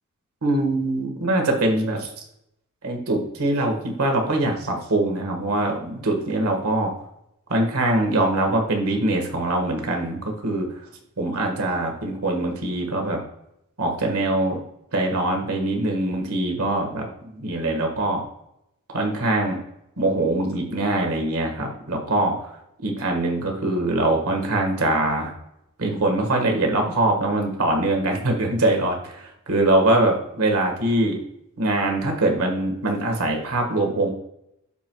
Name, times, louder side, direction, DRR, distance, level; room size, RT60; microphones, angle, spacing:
voice 1, 0.4-2.1 2.8-6.9 7.5-10.8 11.2-13.2 13.8-14.6 14.9-18.2 18.9-19.6 20.0-22.5 22.8-25.3 25.8-31.2 31.6-34.1, right 2 dB, 80° right, 2 dB, 1.6 m, -23 dB
13.0 x 4.7 x 2.3 m, 0.81 s
head